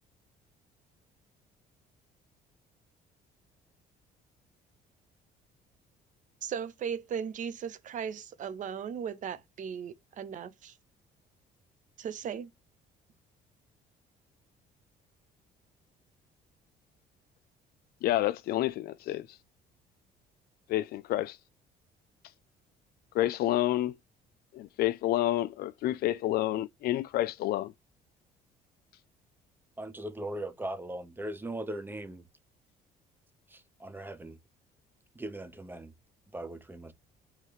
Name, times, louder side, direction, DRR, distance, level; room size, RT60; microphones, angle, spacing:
voice 1, 6.4-10.8 12.0-12.5, right 7 dB, 50° right, 0.8 m, -37 dB
voice 2, 18.0-19.3 20.7-21.4 23.1-23.9 24.5-27.7, left 14 dB, 65° left, 0.4 m, -29 dB
voice 3, 29.8-32.2 33.5-34.4 35.1-35.9 36.3-36.9, right 1 dB, 10° right, 0.9 m, -39 dB
4.8 x 3.2 x 3.0 m
cardioid pair, 110°, 17 cm